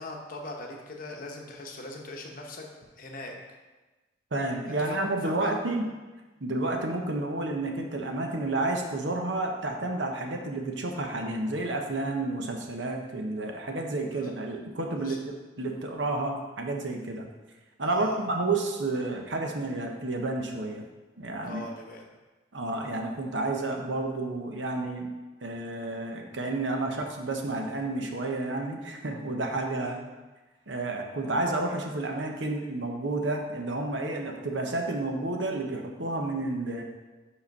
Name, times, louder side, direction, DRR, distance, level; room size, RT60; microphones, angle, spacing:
voice 1, 0.0-2.7 3.0-3.3 4.9-5.0 5.2-5.6 14.1-14.3 15.0-15.2 17.8-18.3 21.4-22.1 29.7-30.0 31.2-31.4, left 2 dB, 45° left, 1 dB, 0.9 m, -40 dB
voice 2, 4.3-5.9 6.4-15.2 15.6-17.3 17.8-20.8 21.2-21.6 22.5-25.1 25.4-29.9 30.7-36.8, right 2 dB, 75° right, 2 dB, 0.9 m, -30 dB
5.1 x 5.0 x 5.2 m, 1.2 s
head